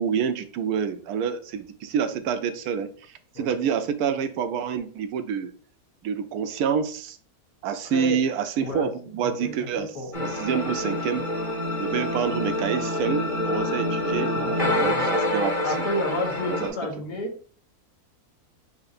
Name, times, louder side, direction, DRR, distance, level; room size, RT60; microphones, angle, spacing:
voice 1, 0.0-5.5 6.0-7.2 7.6-9.9 10.2-11.3 11.8-15.7 16.5-16.8, right 7 dB, 85° right, 1.1 m, -27 dB
voice 2, 7.8-8.2 8.6-8.9 9.2-10.3 14.3-15.0 15.6-17.4, left 1 dB, 80° left, 1.6 m, -31 dB
sound 1, 10.1-16.7, left 1 dB, 35° left, 1.2 m, -27 dB
6.0 x 2.8 x 2.5 m
omnidirectional pair, 1.6 m